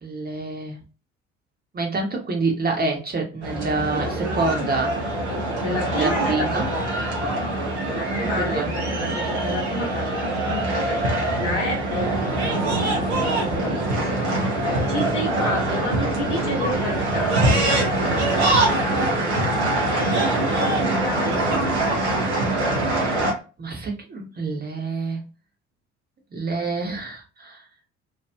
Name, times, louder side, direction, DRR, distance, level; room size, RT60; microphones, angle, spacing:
voice 1, 0.0-0.8 1.7-4.9 6.0-6.7 8.4-8.7 15.4-15.7 18.7-19.4 23.6-25.2 26.3-27.6, right 3 dB, 25° right, 1 dB, 1.2 m, -27 dB
sound 1, 3.4-23.3, right 2 dB, 75° right, 0.9 m, -23 dB
voice 2, 5.3-7.4 7.8-11.0 11.4-12.1 12.4-17.8 19.8-20.4 20.6-21.7, left 1 dB, 75° left, 1 dB, 1.0 m, -31 dB
2.9 x 2.5 x 2.3 m, 0.32 s
figure-of-eight pair, 50°, 35 cm